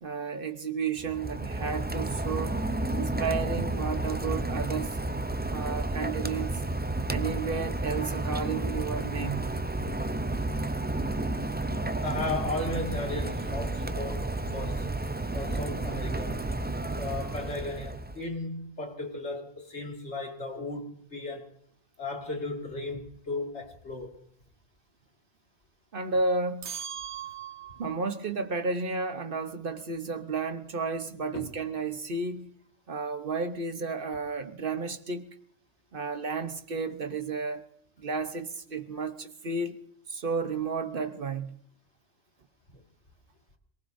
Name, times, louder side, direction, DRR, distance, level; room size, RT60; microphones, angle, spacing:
voice 1, 0.0-2.6 2.9-5.0 5.5-6.6 7.1-9.4 25.9-26.7 27.8-32.5 32.9-35.3 35.9-37.6 38.0-39.8 40.1-41.6, right 4 dB, 55° right, 1.2 m, -32 dB
Rain, 1.0-18.3, right 2 dB, 15° right, 0.3 m, -31 dB
voice 2, 12.0-15.0 15.3-16.6 17.0-21.6 22.0-24.2 31.3-31.5, left 2 dB, 80° left, 2.5 m, -35 dB
sound 1, 26.6-28.0, right 9 dB, 85° right, 1.1 m, -39 dB
26.5 x 19.0 x 2.7 m
omnidirectional pair, 1.1 m